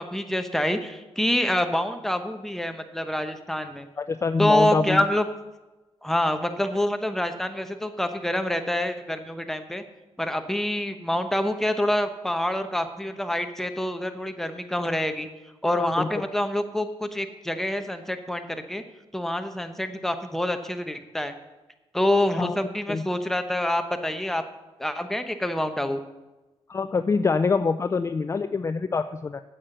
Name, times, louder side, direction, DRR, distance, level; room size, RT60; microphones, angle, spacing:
voice 1, 0.0-3.9 4.4-5.2 6.0-9.8 10.2-15.3 15.6-18.8 19.1-21.3 21.9-24.4 24.8-26.0, left 1 dB, 5° left, 7 dB, 1.0 m, -26 dB
voice 2, 4.0-5.0 15.8-16.2 22.4-22.6 22.9-23.0 26.7-29.4, left 4 dB, 30° left, 11 dB, 0.4 m, -25 dB
8.7 x 7.6 x 6.6 m, 1.1 s
cardioid pair, 85°, 10 cm